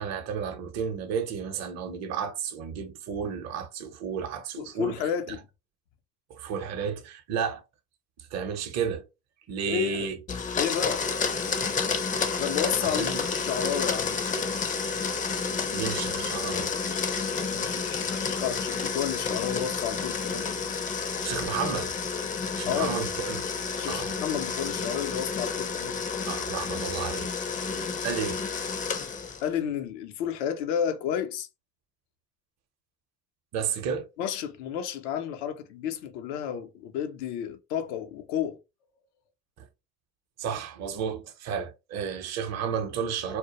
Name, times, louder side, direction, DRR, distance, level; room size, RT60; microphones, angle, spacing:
voice 1, 0.0-4.9 6.3-7.6 8.3-9.0 9.5-10.2 13.0-13.2 15.7-16.7 21.2-21.9 22.6-23.5 23.9-24.1 26.3-27.3 28.0-28.4 33.5-34.1 40.4-43.4, right 7 dB, 50° right, 0.6 m, -32 dB
voice 2, 4.6-5.4 9.6-10.1 10.6-11.1 12.4-14.2 17.5-20.5 22.6-22.9 23.8-26.0 29.4-31.5 34.2-38.6, left 9 dB, 85° left, 0.5 m, -31 dB
Domestic sounds home sounds, 10.3-29.5, left 5 dB, 25° left, 0.4 m, -30 dB
2.2 x 2.0 x 2.8 m
hypercardioid pair, 70°, 34 cm